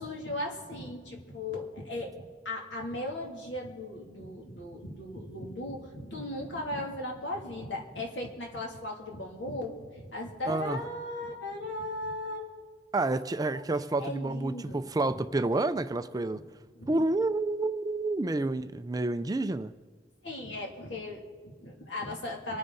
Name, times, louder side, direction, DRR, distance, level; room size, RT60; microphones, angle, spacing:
voice 1, 0.0-12.5 12.9-13.1 14.0-14.8 16.3-16.5 16.7-17.0 20.2-22.6, left 1 dB, 85° left, 0 dB, 2.9 m, -37 dB
voice 2, 10.5-10.8 12.9-16.4 16.9-19.7, right 2 dB, 20° right, 11 dB, 0.4 m, -29 dB
26.0 x 9.9 x 4.1 m, 1.5 s
head